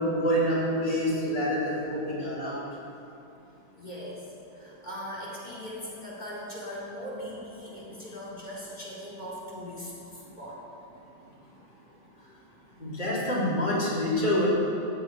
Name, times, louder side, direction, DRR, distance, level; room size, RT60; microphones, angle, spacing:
voice 1, 0.0-2.6 12.8-14.5, equal, 85° left, -7 dB, 4.7 m, -27 dB
voice 2, 3.8-10.6, equal, 25° left, -7 dB, 4.4 m, -40 dB
15.0 x 7.8 x 9.5 m, 2.8 s
omnidirectional pair, 1.9 m